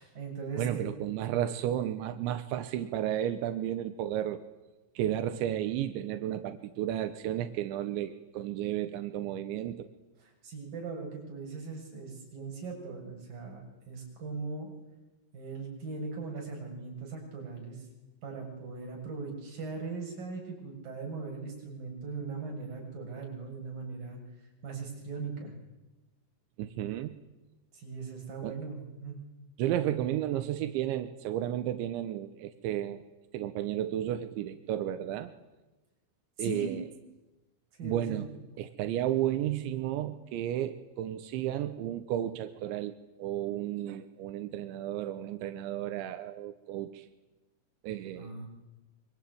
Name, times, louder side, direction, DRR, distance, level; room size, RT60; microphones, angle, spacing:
voice 1, 0.0-0.9 10.2-14.7 15.3-17.9 18.2-24.2 24.6-25.5 27.7-29.2 36.4-36.7 37.8-38.3 48.2-48.5, right 4 dB, 50° right, 0 dB, 8.5 m, -39 dB
voice 2, 0.6-4.4 5.0-9.9 26.6-27.1 28.4-28.6 29.6-33.0 33.3-35.3 36.4-36.8 37.8-38.3 38.6-47.1 47.8-48.3, right 12 dB, 90° right, 9 dB, 3.5 m, -33 dB
25.0 x 24.5 x 9.5 m, 1.1 s
omnidirectional pair, 5.2 m